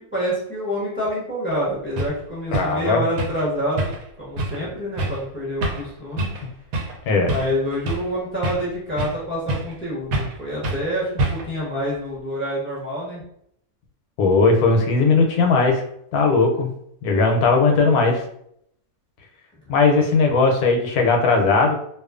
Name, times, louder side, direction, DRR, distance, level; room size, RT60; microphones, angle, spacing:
voice 1, 0.0-3.9 4.2-6.3 7.2-13.2, equal, 10° left, -7 dB, 0.8 m, -27 dB
sound 1, 1.5-1.6 2.0-2.2 2.5-2.8 3.2-3.5 3.8-4.1 4.4-4.6 5.0-5.2 5.6-5.9 6.2-6.4 6.7-7.0 7.3-8.1 8.4-9.2 9.5-9.8 10.1-10.4 10.6-10.8 11.2-11.6, right 2 dB, 75° right, 1.0 m, -26 dB
voice 2, 2.5-3.0 7.1-7.3 14.2-15.8 16.1-16.7 17.0-18.2 19.7-21.7, left 3 dB, 80° left, 2 dB, 1.0 m, -18 dB
2.4 x 2.4 x 2.4 m, 0.70 s
omnidirectional pair, 1.6 m